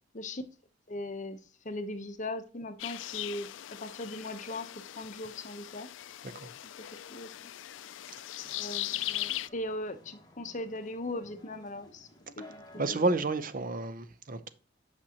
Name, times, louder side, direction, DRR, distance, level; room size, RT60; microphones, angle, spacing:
voice 1, 0.9-1.4 1.6-3.5 3.8-4.7 5.0-5.9 7.1-7.3 8.6-12.1 12.4-13.0, left 1 dB, 40° left, 0.8 m, -39 dB
sound 1, 2.8-9.5, left 14 dB, 85° left, 0.4 m, -39 dB
sound 2, 8.4-13.4, left 1 dB, 25° left, 1.5 m, -55 dB
voice 2, 12.7-14.5, right 3 dB, 45° right, 0.7 m, -31 dB
8.7 x 6.0 x 2.9 m
head